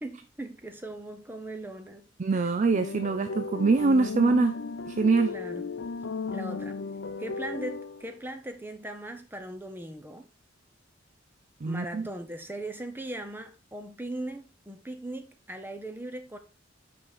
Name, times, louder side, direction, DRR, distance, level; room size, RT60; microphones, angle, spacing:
voice 1, 0.0-2.1 2.3-2.5 5.2-5.7 6.3-6.8 7.2-10.3 11.6-16.4, right 1 dB, 10° right, 0.9 m, -39 dB
voice 2, 2.2-4.5 4.9-5.3 11.6-12.1, right 4 dB, 40° right, 0.4 m, -24 dB
sound 1, 2.7-8.1, left 4 dB, 70° left, 0.5 m, -35 dB
6.0 x 5.2 x 4.1 m
head